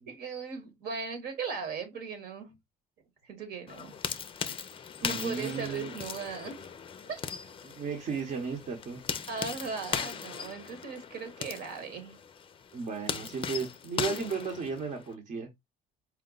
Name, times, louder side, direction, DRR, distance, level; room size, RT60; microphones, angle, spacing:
voice 1, 0.1-2.5 3.2-3.9 5.0-6.7 7.1-7.2 9.3-12.1, right 5 dB, 70° right, 1.3 m, -38 dB
sound 1, 3.7-15.1, left 7 dB, 30° left, 0.4 m, -38 dB
voice 2, 5.0-5.9 7.6-9.0 12.7-15.5, right 5 dB, 50° right, 0.9 m, -35 dB
4.7 x 2.2 x 3.8 m
cardioid pair, 110°, 17 cm